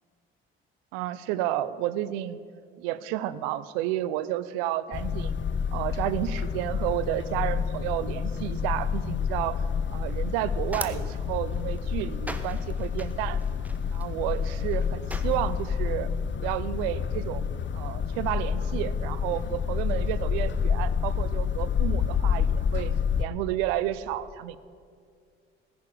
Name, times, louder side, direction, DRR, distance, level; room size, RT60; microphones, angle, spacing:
voice 1, 0.9-2.4 2.8-5.4 5.7-9.6 9.9-13.4 13.9-16.1 16.4-17.4 17.8-22.9 23.2-24.6, right 13 dB, 80° right, 16 dB, 0.6 m, -31 dB
sound 1, 4.9-23.3, left 7 dB, 35° left, 0.8 m, -28 dB
sound 2, 10.1-15.7, right 1 dB, 5° right, 1.2 m, -43 dB
15.0 x 7.0 x 9.9 m, 2.2 s
hypercardioid pair, 50°, 31 cm